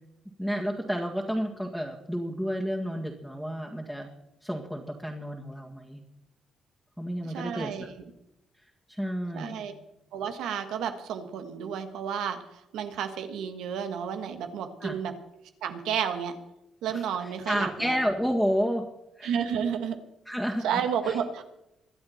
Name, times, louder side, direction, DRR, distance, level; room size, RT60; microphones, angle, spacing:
voice 1, 0.4-4.1 4.4-6.0 7.0-7.9 8.9-9.6 14.8-15.0 16.9-17.0 17.5-18.9 19.2-19.4 20.3-20.6 21.1-21.2, equal, ahead, -3 dB, 2.1 m, -30 dB
voice 2, 7.2-7.9 9.3-9.7 10.1-15.1 15.6-16.3 16.8-17.9 19.2-20.0 20.6-21.4, right 8 dB, 85° right, 7 dB, 1.5 m, -31 dB
23.5 x 8.5 x 4.3 m, 0.87 s
cardioid pair, 90°, 0 cm